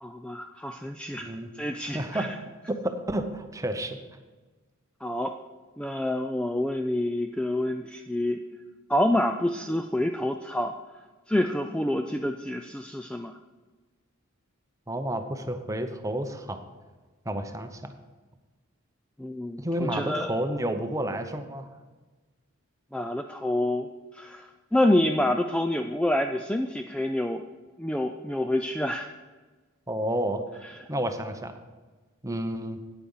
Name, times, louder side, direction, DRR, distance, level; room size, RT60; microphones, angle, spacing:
voice 1, 0.0-1.3 1.5-2.3 5.0-5.4 5.8-8.4 8.9-10.7 11.3-13.4 19.2-20.3 22.9-27.4 27.8-29.1, left 1 dB, 5° left, 6 dB, 0.3 m, -27 dB
voice 2, 1.9-2.3 2.7-4.0 14.9-16.6 17.3-17.9 19.6-21.7 29.9-30.4 30.9-31.5 32.2-32.8, right 1 dB, 15° right, 7 dB, 0.7 m, -30 dB
9.1 x 8.4 x 5.5 m, 1.3 s
head